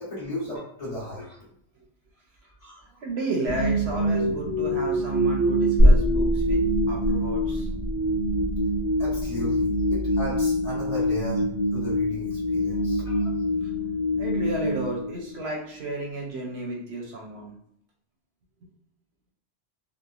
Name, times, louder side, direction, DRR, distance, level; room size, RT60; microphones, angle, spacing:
voice 1, 0.0-1.4 2.6-2.8 9.0-11.4 11.7-13.3, left 1 dB, 35° left, -8 dB, 1.0 m, -35 dB
voice 2, 3.0-6.6 6.9-7.7 9.4-9.5 12.7-12.9 13.6-13.7 14.2-17.5, right 2 dB, 65° right, -1 dB, 0.8 m, -33 dB
sound 1, 3.5-15.6, equal, 85° left, 1.1 m, -26 dB
sound 2, 5.8-13.1 13.4-13.5, equal, 55° left, 1.2 m, -25 dB
2.8 x 2.1 x 2.3 m, 0.72 s
omnidirectional pair, 1.2 m